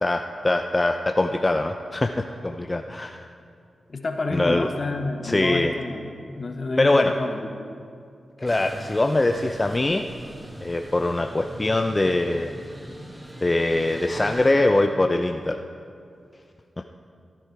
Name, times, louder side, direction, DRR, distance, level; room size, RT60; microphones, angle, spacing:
voice 1, 0.0-3.2 4.3-4.7 5.2-5.7 6.8-7.1 8.4-10.0 10.6-12.5 13.4-15.6, left 2 dB, 30° left, 5 dB, 0.6 m, -22 dB
voice 2, 3.9-7.4, left 3 dB, 55° left, 4 dB, 1.3 m, -29 dB
sound 1, 8.5-14.5, right 1 dB, 20° right, 2.0 m, -41 dB
15.0 x 10.0 x 4.7 m, 2.4 s
cardioid pair, 50°, 0 cm